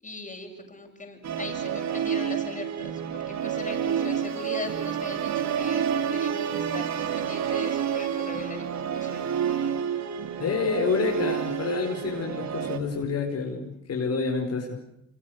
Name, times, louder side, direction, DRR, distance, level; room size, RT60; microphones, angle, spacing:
voice 1, 0.0-5.9 6.1-9.3, left 3 dB, 25° left, 3 dB, 7.8 m, -39 dB
Musical instrument, 1.2-12.8, right 8 dB, 65° right, 3.0 m, -29 dB
voice 2, 10.4-14.8, left 5 dB, 55° left, 1 dB, 5.0 m, -28 dB
27.5 x 27.0 x 6.6 m, 0.80 s
cardioid pair, 90°, 30 cm